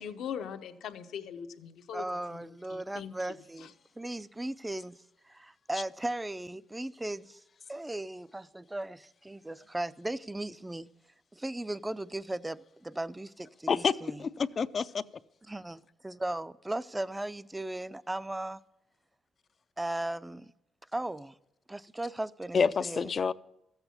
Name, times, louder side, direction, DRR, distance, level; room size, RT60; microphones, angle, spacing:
voice 1, 0.0-3.1 3.6-3.7, left 8 dB, 80° left, 1.0 m, -41 dB
voice 2, 1.9-5.0 5.3-7.4 7.7-10.9 11.3-14.2 15.5-18.6 19.8-20.5 20.9-21.4 21.7-23.1, right 1 dB, 10° right, 0.4 m, -37 dB
voice 3, 13.7-15.0 22.5-23.3, left 5 dB, 45° left, 0.5 m, -28 dB
14.0 x 8.1 x 7.1 m
cardioid pair, 90°, 0 cm